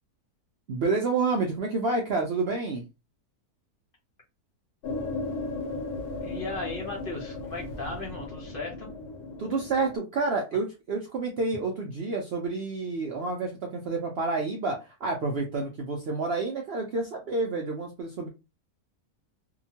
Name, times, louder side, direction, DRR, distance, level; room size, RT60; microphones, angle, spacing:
voice 1, 0.7-2.9 9.4-18.3, right 3 dB, 75° right, 1 dB, 0.5 m, -29 dB
sound 1, 4.8-10.0, left 3 dB, 85° left, 1.1 m, -36 dB
voice 2, 6.2-8.9, left 3 dB, 45° left, -1 dB, 0.8 m, -36 dB
2.8 x 2.2 x 2.7 m, 0.28 s
omnidirectional pair, 1.6 m